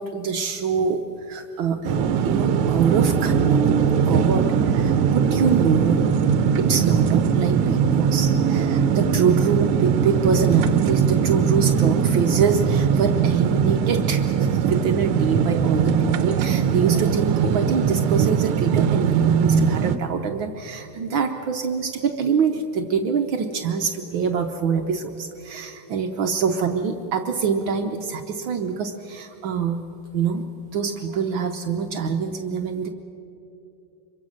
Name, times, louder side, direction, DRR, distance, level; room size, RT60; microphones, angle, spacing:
voice 1, 0.0-6.1 6.6-29.8 30.1-30.5 30.7-32.9, right 6 dB, 70° right, 5 dB, 1.6 m, -25 dB
sound 1, 1.8-20.0, right 7 dB, 85° right, 1.8 m, -20 dB
25.5 x 23.0 x 6.4 m, 2.8 s
omnidirectional pair, 2.4 m